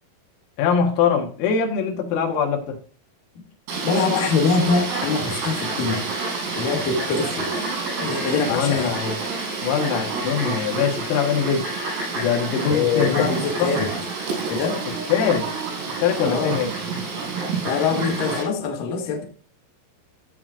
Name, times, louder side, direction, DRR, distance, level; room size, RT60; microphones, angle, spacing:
voice 1, 0.6-2.8 8.5-9.1 9.6-11.7 12.2-13.8 15.1-15.5 16.0-16.7, left 7 dB, 85° left, 4.1 m, -22 dB
Fowl, 3.7-18.4, right 3 dB, 90° right, 5.9 m, -28 dB
voice 2, 3.8-6.1 6.6-8.9 12.7-13.9 14.5-14.8 16.2-16.6 17.6-19.2, left 5 dB, 70° left, 2.1 m, -24 dB
13.5 x 7.5 x 2.5 m
omnidirectional pair, 5.9 m